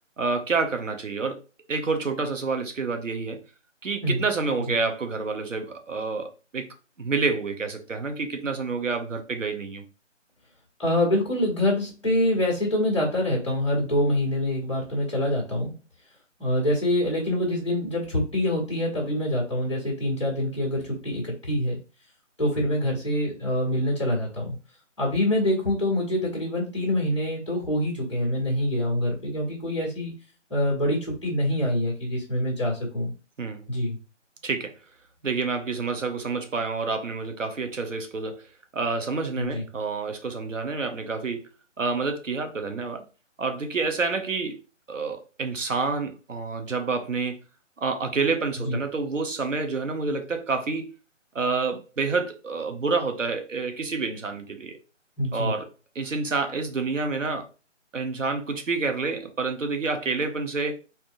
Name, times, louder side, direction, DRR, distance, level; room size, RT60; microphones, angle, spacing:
voice 1, 0.2-1.4 1.7-3.4 3.8-9.8 33.4-33.6 34.4-34.7 35.2-38.4 38.7-41.5 41.8-43.0 43.4-44.6 44.9-47.4 47.8-50.9 51.3-54.8 55.3-55.7 55.9-57.5 57.9-60.8, right 4 dB, 85° right, 0.9 m, -28 dB
voice 2, 10.8-15.7 16.4-21.8 22.4-24.5 25.0-30.1 30.5-33.1 33.7-34.0 39.4-39.6 48.6-48.8 55.2-55.5, left 1 dB, 25° left, 1.3 m, -25 dB
4.4 x 2.8 x 2.5 m
figure-of-eight pair, 180°, 37 cm